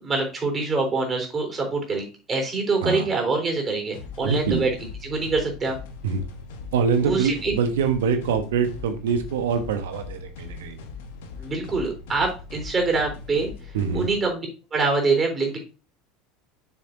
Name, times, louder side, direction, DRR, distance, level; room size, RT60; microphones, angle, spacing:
voice 1, 0.0-4.7 5.0-5.8 7.0-7.5 11.4-13.5 13.9-14.5 14.7-15.6, right 3 dB, 25° right, 2 dB, 3.7 m, -25 dB
sound 1, 3.9-14.2, left 4 dB, 65° left, 1.2 m, -40 dB
voice 2, 4.2-4.7 6.0-6.2 6.7-10.8 13.7-14.1, right 6 dB, 70° right, 8 dB, 1.0 m, -24 dB
7.2 x 6.6 x 2.7 m, 0.32 s
figure-of-eight pair, 75°, 0 cm